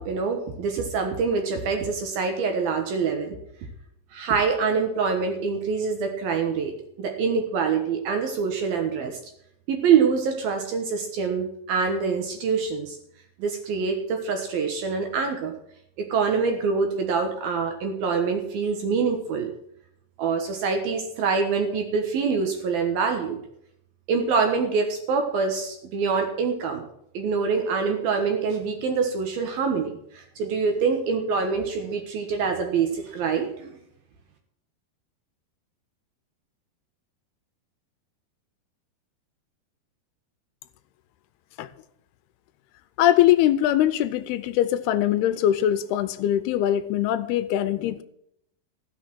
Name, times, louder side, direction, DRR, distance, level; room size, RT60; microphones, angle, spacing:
voice 1, 0.0-3.4 4.1-6.7 7.0-9.2 9.7-13.0 13.4-15.6 16.0-19.5 20.2-23.4 24.1-26.8 27.1-33.8, right 5 dB, 65° right, 2.9 m, -25 dB
voice 2, 43.0-48.0, left 12 dB, 80° left, 2.5 m, -22 dB
15.0 x 6.6 x 7.6 m
omnidirectional pair, 4.8 m